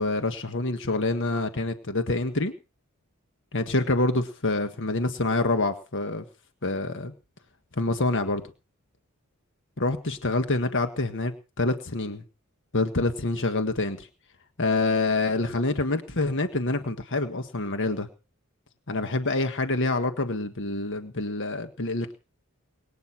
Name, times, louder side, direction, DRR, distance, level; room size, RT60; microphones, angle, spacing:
voice 1, 0.0-2.5 3.5-6.2 6.6-7.1 7.8-8.4 9.8-12.2 12.7-14.1 14.6-18.1 18.9-22.2, left 2 dB, 60° left, 8 dB, 1.6 m, -26 dB
23.0 x 9.4 x 6.1 m, 0.33 s
head